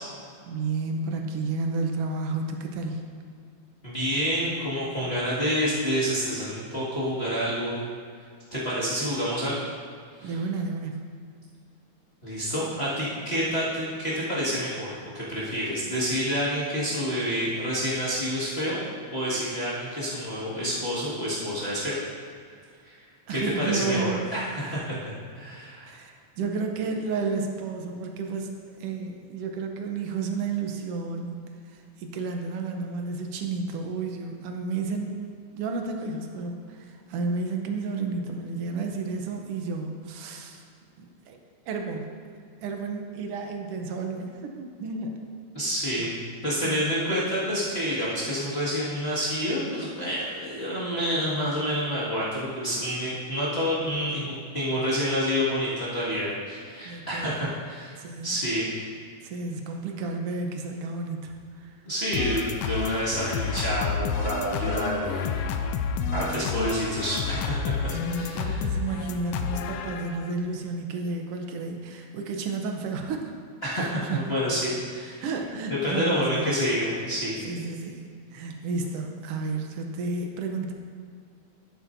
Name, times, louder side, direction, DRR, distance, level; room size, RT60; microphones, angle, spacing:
voice 1, 0.4-3.1 10.2-11.0 23.3-24.3 24.6-24.9 25.8-31.4 31.7-35.1 35.5-40.6 41.0-41.4 41.7-42.0 42.6-45.2 46.0-46.1 46.6-47.0 56.8-57.5 58.0-58.4 59.2-61.8 66.0-66.4 67.9-73.4 73.7-74.3 75.2-76.5 77.4-78.0 78.3-80.7, right 4 dB, 70° right, 3 dB, 1.5 m, -32 dB
voice 2, 3.8-7.8 8.5-9.6 10.2-10.3 12.2-14.9 15.1-18.9 19.1-21.9 22.8-22.9 23.3-25.9 45.5-46.1 46.4-58.0 58.2-58.9 61.9-65.2 66.1-68.7 73.6-75.2 75.8-77.4, equal, 25° left, -11 dB, 1.7 m, -28 dB
sound 1, 62.1-70.3, left 6 dB, 90° left, 1.4 m, -30 dB
12.0 x 9.2 x 2.6 m, 2.2 s
omnidirectional pair, 3.4 m